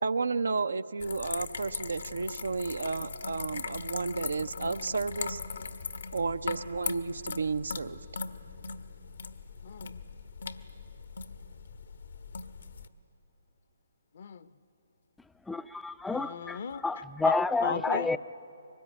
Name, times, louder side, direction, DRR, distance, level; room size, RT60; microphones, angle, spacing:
voice 1, 0.0-5.4 6.1-8.0, right 4 dB, 75° right, 12 dB, 0.7 m, -32 dB
sound 1, 1.0-12.9, left 5 dB, 70° left, 1.2 m, -40 dB
voice 2, 9.6-10.0 14.2-14.5 16.1-16.8 17.3-17.4 17.6-18.2, left 7 dB, 55° left, 14 dB, 0.9 m, -35 dB
voice 3, 15.5-18.2, left 3 dB, 5° left, 14 dB, 0.5 m, -30 dB
23.0 x 19.5 x 10.0 m, 3.0 s
figure-of-eight pair, 145°, 0 cm